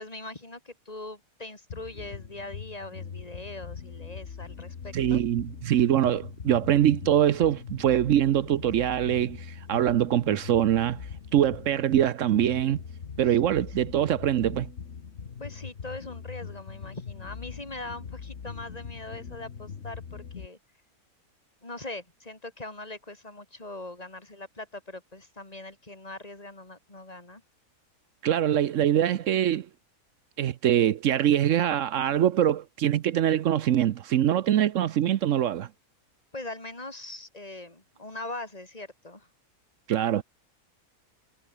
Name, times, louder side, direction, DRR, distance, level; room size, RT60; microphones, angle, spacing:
voice 1, 0.0-5.2 15.4-20.6 21.6-27.4 36.3-39.3, left 2 dB, 25° left, 4.1 m, -41 dB
sound 1, 1.7-20.5, left 6 dB, 50° left, 1.6 m, -41 dB
voice 2, 4.9-9.4 9.7-11.0 11.3-12.8 13.2-14.7 28.2-29.7 30.4-35.7 39.9-40.2, right 11 dB, 65° right, 0.9 m, -23 dB
omnidirectional pair, 1.6 m